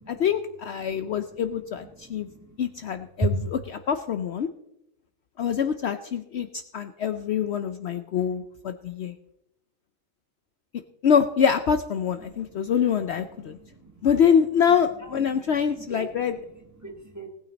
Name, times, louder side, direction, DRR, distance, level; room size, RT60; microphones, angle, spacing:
voice 1, 0.1-2.3 2.6-3.4 3.9-4.5 5.4-9.1 11.0-13.6 14.0-16.4, left 7 dB, 60° left, 9 dB, 0.8 m, -25 dB
voice 2, 0.7-3.5 12.1-14.2 15.0-17.3, right 2 dB, 10° right, 2 dB, 1.8 m, -37 dB
18.5 x 9.0 x 4.0 m, 0.84 s
omnidirectional pair, 1.4 m